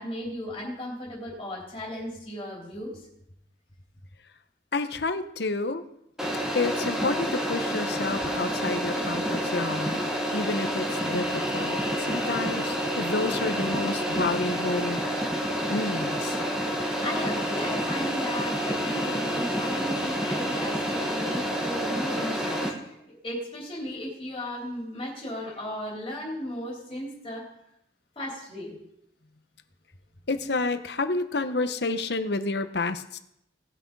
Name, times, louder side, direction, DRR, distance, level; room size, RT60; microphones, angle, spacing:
voice 1, 0.0-3.1 16.8-27.5 28.1-28.8, equal, 25° left, -3 dB, 3.3 m, -36 dB
voice 2, 4.7-5.8 6.5-15.0 15.7-16.4 30.3-33.2, left 3 dB, 65° left, 10 dB, 0.9 m, -30 dB
sound 1, 6.2-22.7, equal, 5° right, 1.4 m, -28 dB
18.0 x 6.2 x 5.3 m, 0.78 s
head